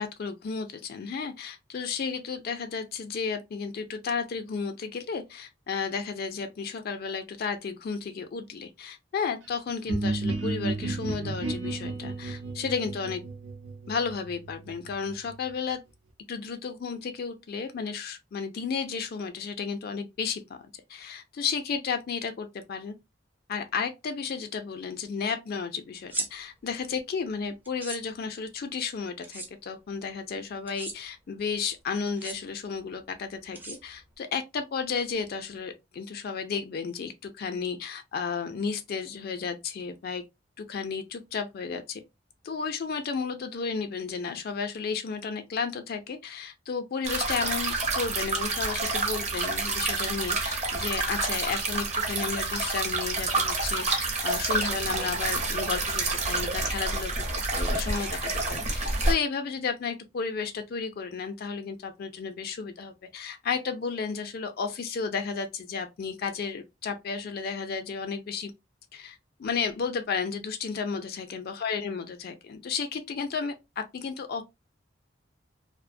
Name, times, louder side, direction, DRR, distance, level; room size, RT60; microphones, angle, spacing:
voice 1, 0.0-13.2 13.9-15.8 16.3-20.6 20.9-22.9 23.5-40.2 40.6-42.0 42.4-57.1 57.5-68.5 68.9-74.4, left 5 dB, 55° left, 0.4 m, -33 dB
sound 1, 9.9-15.5, right 2 dB, 75° right, 0.7 m, -33 dB
sound 2, 26.0-26.3 27.6-28.0 29.2-29.5 30.7-31.0 32.1-32.4 33.5-34.1, right 3 dB, 10° right, 0.4 m, -36 dB
sound 3, 47.0-59.1, right 3 dB, 40° right, 0.7 m, -28 dB
2.4 x 2.1 x 2.5 m
head